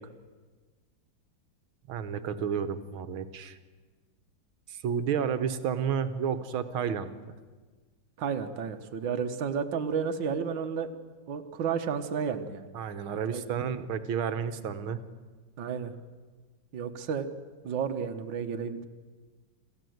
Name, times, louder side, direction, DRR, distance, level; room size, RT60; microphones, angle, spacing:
voice 1, 1.9-3.6 4.7-7.3 12.7-15.0, right 7 dB, 90° right, 11 dB, 2.0 m, -31 dB
voice 2, 8.2-11.0 11.3-12.7 13.3-13.4 15.6-15.9 16.7-17.3 17.6-18.9, right 6 dB, 65° right, 6 dB, 1.9 m, -32 dB
27.5 x 15.0 x 7.9 m, 1.4 s
omnidirectional pair, 2.2 m